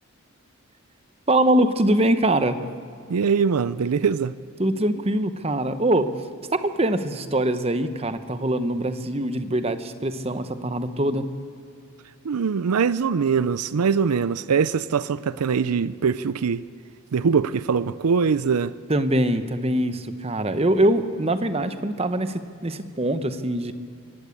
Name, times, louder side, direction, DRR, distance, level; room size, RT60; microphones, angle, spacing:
voice 1, 1.3-2.6 4.6-6.1 6.5-11.3 18.9-23.7, right 1 dB, 25° right, 0.9 m, -23 dB
voice 2, 3.1-4.4 12.2-16.6 17.1-18.7, right 6 dB, 90° right, 0.5 m, -22 dB
23.5 x 17.0 x 8.4 m
head